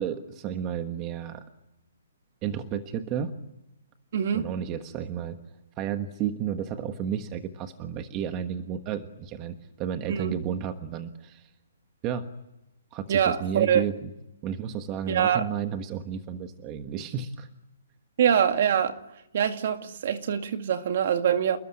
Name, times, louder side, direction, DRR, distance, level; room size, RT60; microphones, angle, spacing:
voice 1, 0.0-1.4 2.4-3.3 4.3-5.4 5.8-11.5 12.0-12.3 12.9-13.9 14.4-17.5, right 8 dB, 20° right, 1.3 m, -32 dB
voice 2, 4.1-4.4 10.1-10.4 13.1-13.8 15.1-15.5 18.2-19.0 19.3-21.6, right 8 dB, 45° right, 2.2 m, -24 dB
29.0 x 20.5 x 9.9 m
hypercardioid pair, 165°, 0 cm